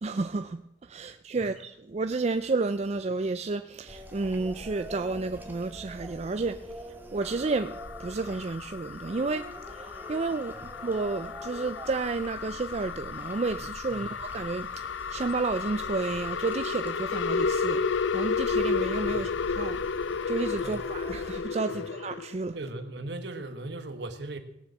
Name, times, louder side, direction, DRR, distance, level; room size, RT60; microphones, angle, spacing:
voice 1, 0.0-17.8 18.1-19.3 19.6-19.8 20.3-22.6, right 3 dB, 35° right, 0.4 m, -31 dB
sound 1, 3.9-21.4, equal, 10° right, 1.6 m, -45 dB
sound 2, 7.2-22.3, left 5 dB, 90° left, 0.5 m, -32 dB
voice 2, 22.5-24.4, right 2 dB, 65° right, 1.4 m, -38 dB
18.0 x 7.1 x 7.0 m
head